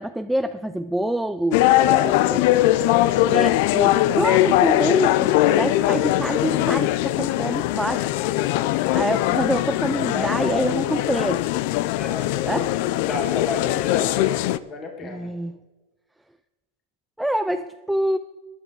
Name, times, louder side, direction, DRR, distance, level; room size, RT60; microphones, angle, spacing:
voice 1, 0.0-2.5 3.3-5.3 5.6-8.1 8.9-11.4 12.4-12.8 15.0-15.6 17.2-18.2, right 1 dB, 5° right, 8 dB, 0.4 m, -26 dB
sound 1, 1.5-14.6, left 15 dB, 60° left, 0.5 m, -21 dB
voice 2, 1.8-2.2 3.0-3.2 9.9-11.1 11.9-12.3 13.0-15.3, left 4 dB, 25° left, 3 dB, 2.3 m, -33 dB
14.0 x 10.0 x 4.8 m, 1.2 s
supercardioid pair, 130°, 0 cm